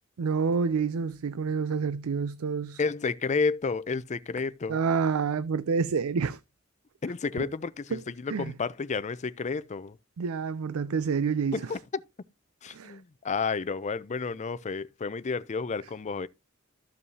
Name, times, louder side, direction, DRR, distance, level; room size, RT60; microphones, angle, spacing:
voice 1, 0.2-2.8 4.7-6.4 7.4-7.5 7.9-8.0 8.3-8.5 10.2-11.7 12.7-13.0, right 5 dB, 75° right, 0.4 m, -28 dB
voice 2, 2.8-4.8 7.0-10.0 11.5-11.8 12.6-16.3, left 4 dB, 35° left, 0.4 m, -31 dB
14.0 x 5.5 x 2.7 m
head